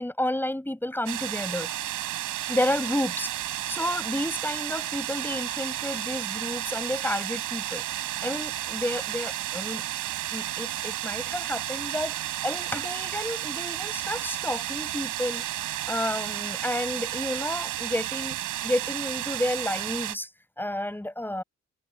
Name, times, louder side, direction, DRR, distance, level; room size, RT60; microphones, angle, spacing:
voice 1, 0.0-1.7 2.5-7.8 8.2-9.8 10.3-12.1 12.4-15.4 15.9-18.4 18.6-20.3 20.6-21.4, left 1 dB, 5° left, 7.3 m, -31 dB
sound 1, 1.1-20.2, right 14 dB, 85° right, 6.9 m, -32 dB
cardioid pair, 90°, 30 cm